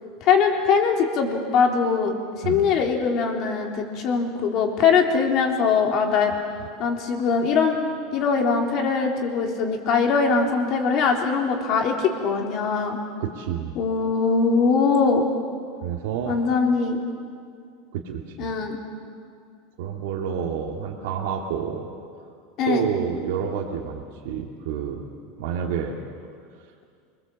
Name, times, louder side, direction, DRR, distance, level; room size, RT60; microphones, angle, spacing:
voice 1, 0.2-2.1 2.4-6.3 6.8-7.8 8.1-13.0 13.7-15.3 16.3-17.0 18.4-18.8 22.6-22.9, left 5 dB, 45° left, 2 dB, 3.4 m, -21 dB
voice 2, 13.2-13.7 15.8-16.4 17.9-18.5 19.8-21.9 22.7-25.0 25.4-26.0, right 8 dB, 75° right, 0 dB, 2.2 m, -29 dB
27.0 x 21.0 x 7.6 m, 2.3 s
supercardioid pair, 150°, 0 cm